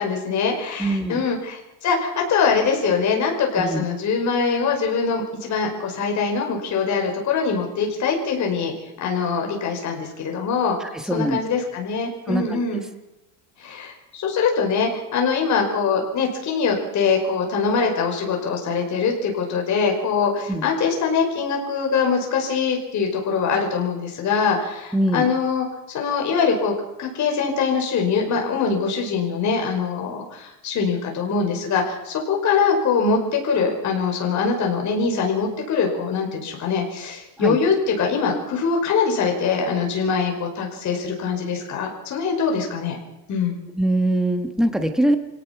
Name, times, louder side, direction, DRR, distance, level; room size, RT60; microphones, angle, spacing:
voice 1, 0.0-8.7 9.0-10.8 11.1-12.8 13.6-26.7 27.0-43.0 43.3-43.6, left 5 dB, 35° left, 1 dB, 5.3 m, -23 dB
voice 2, 0.8-1.2 3.6-3.8 10.8-11.4 12.3-12.6 20.5-20.7 24.9-25.3 37.4-37.6 43.7-45.2, right 1 dB, ahead, 7 dB, 1.3 m, -22 dB
26.0 x 18.0 x 6.0 m, 0.92 s
cardioid pair, 170°, 49 cm